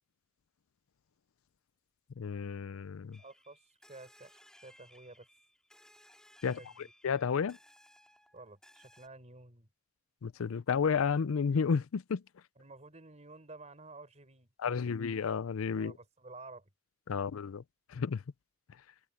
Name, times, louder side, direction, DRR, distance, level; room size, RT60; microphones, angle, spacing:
voice 1, 2.2-3.2 6.4-6.6 7.0-7.6 10.2-12.2 14.6-15.9 17.1-17.6 17.9-18.2, left 6 dB, 90° left, 0.5 m, -31 dB
sound 1, 3.1-9.1, left 1 dB, 5° left, 2.9 m, -61 dB
voice 2, 3.2-3.6 3.9-5.3 6.4-6.9 8.3-9.7 12.6-15.0 15.7-16.7 17.1-17.2, right 2 dB, 35° right, 4.2 m, -52 dB
open air
head